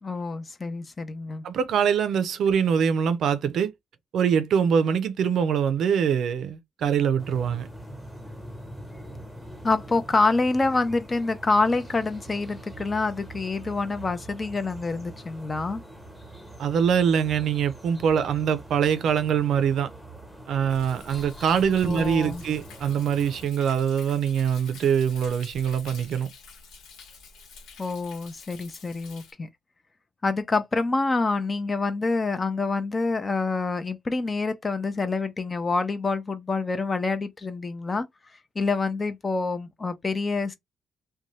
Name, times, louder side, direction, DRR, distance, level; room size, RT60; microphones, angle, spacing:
voice 1, 0.0-1.4 9.6-15.8 21.8-22.4 27.8-29.5 30.2-38.1 38.6-40.5, left 3 dB, 30° left, 0.6 m, -27 dB
voice 2, 1.4-3.7 4.1-7.7 16.6-19.9 20.5-26.3, right 7 dB, 70° right, 0.5 m, -23 dB
sound 1, 7.2-23.5, right 1 dB, ahead, 1.1 m, -43 dB
Thunder, 20.7-29.3, left 4 dB, 85° left, 1.0 m, -47 dB
2.6 x 2.2 x 3.0 m
cardioid pair, 90°, 0 cm